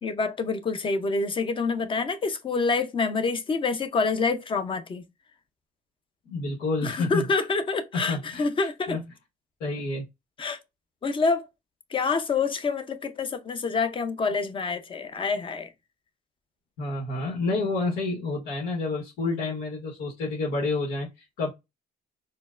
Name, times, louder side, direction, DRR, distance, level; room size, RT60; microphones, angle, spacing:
voice 1, 0.0-5.0 6.8-9.0 10.4-10.6 11.0-11.4 11.9-15.7, left 4 dB, 30° left, 0.6 m, -27 dB
voice 2, 6.3-7.2 7.9-8.5 8.9-9.0 9.6-10.0 16.8-21.5, left 3 dB, 80° left, 1.2 m, -29 dB
4.3 x 2.1 x 2.5 m
cardioid pair, 110°, 17 cm